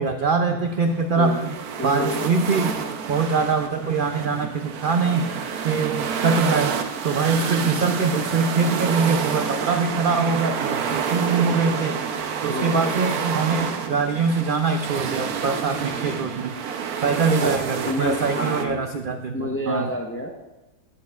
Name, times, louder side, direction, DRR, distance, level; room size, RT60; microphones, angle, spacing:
voice 1, 0.0-1.5 1.8-2.8 3.1-5.3 5.6-6.8 7.0-12.0 12.4-16.6 17.0-19.9, right 4 dB, 60° right, 5 dB, 0.5 m, -23 dB
sound 1, 0.6-18.6, right 6 dB, 80° right, 1.3 m, -29 dB
voice 2, 1.8-2.3 7.5-7.7 12.5-13.0 15.9-16.1 17.4-17.5 17.9-18.8 19.3-20.3, left 1 dB, 10° left, 1 dB, 0.7 m, -29 dB
14.5 x 8.8 x 2.4 m, 1.0 s
omnidirectional pair, 1.6 m